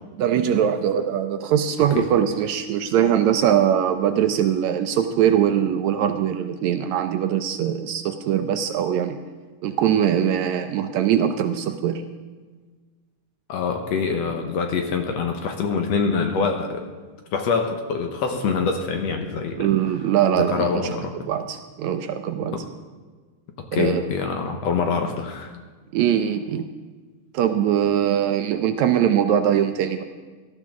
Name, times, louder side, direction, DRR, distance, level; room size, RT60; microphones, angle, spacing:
voice 1, 0.2-9.2 9.6-12.0 19.6-20.8 21.3-22.6 23.7-24.0 25.9-26.7 27.3-30.0, right 9 dB, 75° right, 8 dB, 1.8 m, -21 dB
voice 2, 13.5-16.9 17.3-19.7 20.3-21.1 22.5-22.6 23.7-25.6, left 5 dB, 65° left, 4 dB, 1.9 m, -25 dB
17.5 x 12.5 x 3.6 m, 1.4 s
omnidirectional pair, 3.6 m